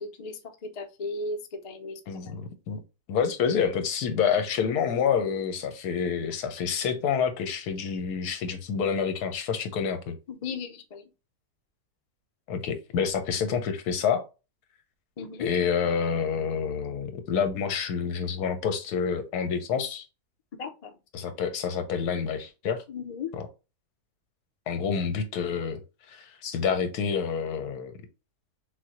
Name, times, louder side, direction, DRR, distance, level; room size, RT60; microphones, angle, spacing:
voice 1, 0.0-2.0 2.3-2.4 10.3-11.1 15.2-15.5 20.6-20.9 22.9-23.3, left 4 dB, 60° left, 0.4 m, -36 dB
voice 2, 2.1-2.8 3.1-10.2 12.5-14.3 15.4-20.0 21.1-22.8 23.3-23.5 24.7-25.8 26.1-27.9, left 6 dB, 80° left, 1.3 m, -28 dB
6.4 x 2.2 x 2.9 m
omnidirectional pair, 1.7 m